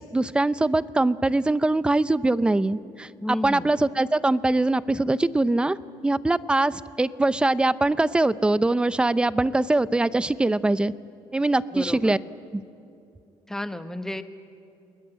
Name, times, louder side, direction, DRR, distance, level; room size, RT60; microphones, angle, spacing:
voice 1, 0.0-5.8 6.0-10.9 11.3-12.2 12.5-12.6, right 2 dB, 10° right, 16 dB, 0.5 m, -22 dB
voice 2, 3.2-3.7 11.7-12.2 13.5-14.2, left 1 dB, 5° left, 9 dB, 1.1 m, -32 dB
28.5 x 21.0 x 9.1 m, 2.6 s
cardioid pair, 130°, 9 cm